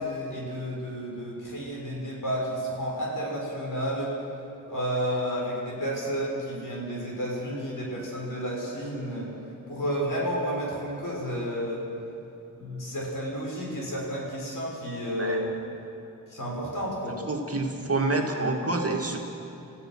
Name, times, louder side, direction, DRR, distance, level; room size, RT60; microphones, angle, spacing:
voice 1, 0.0-4.1 4.6-9.3 9.7-11.8 12.6-15.5 16.3-17.2, equal, 70° left, -3 dB, 6.8 m, -31 dB
voice 2, 17.3-19.2, right 2 dB, 45° right, 1 dB, 2.4 m, -27 dB
29.0 x 15.5 x 6.5 m, 3.0 s
wide cardioid pair, 110°, 34 cm